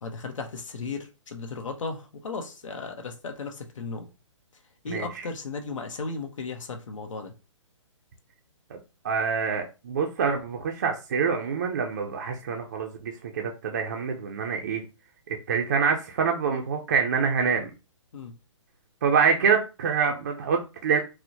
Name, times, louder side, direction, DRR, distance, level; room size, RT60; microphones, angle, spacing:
voice 1, 0.0-4.1 4.8-7.3 18.1-18.4, left 4 dB, 80° left, 0.8 m, -35 dB
voice 2, 4.9-5.3 8.7-8.8 9.0-14.8 15.5-17.7 19.0-21.0, right 6 dB, 35° right, 0.4 m, -26 dB
4.3 x 2.1 x 2.6 m
hypercardioid pair, 170°, 16 cm